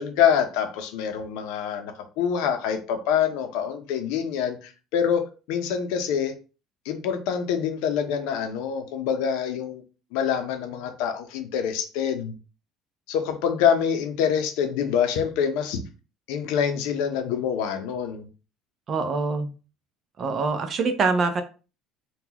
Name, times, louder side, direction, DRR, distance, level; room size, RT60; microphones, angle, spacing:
voice 1, 0.0-6.3 6.8-9.8 10.1-12.3 13.1-15.8 16.3-18.3, left 8 dB, 80° left, 7 dB, 0.6 m, -25 dB
voice 2, 18.9-19.5 20.2-21.4, right 4 dB, 40° right, 8 dB, 0.6 m, -24 dB
3.8 x 2.3 x 2.8 m, 0.34 s
cardioid pair, 120°, 0 cm